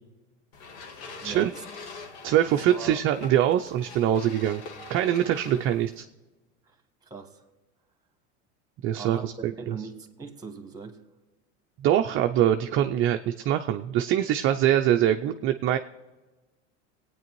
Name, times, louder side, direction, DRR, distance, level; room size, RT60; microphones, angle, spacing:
sound 1, 0.5-6.0, left 4 dB, 75° left, 1.5 m, -44 dB
voice 1, 1.2-1.6 2.5-3.0 5.5-5.6 6.6-7.4 9.0-11.0, right 4 dB, 10° right, 1.5 m, -41 dB
voice 2, 2.2-4.6 4.9-6.0 8.8-9.7 11.8-15.8, right 11 dB, 35° right, 0.5 m, -23 dB
22.0 x 9.1 x 3.1 m
supercardioid pair, 110°, 35 cm